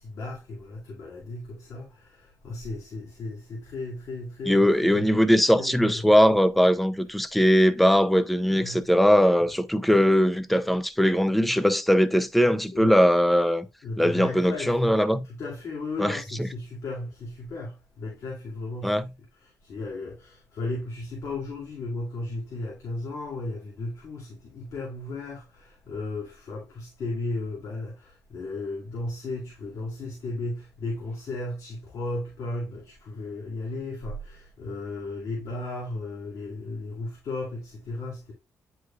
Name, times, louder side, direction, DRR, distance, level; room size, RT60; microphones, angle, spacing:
voice 1, 0.0-5.2 5.6-6.2 7.0-7.1 8.6-8.9 9.4-9.5 12.7-13.0 13.8-14.8 15.2-19.1 19.3-38.3, left 2 dB, 60° left, 2.3 m, -35 dB
voice 2, 4.5-13.7 14.0-15.3 16.0-16.5 18.8-19.1, equal, ahead, 0.5 m, -20 dB
9.4 x 4.8 x 2.4 m
cardioid pair, 130°, 6 cm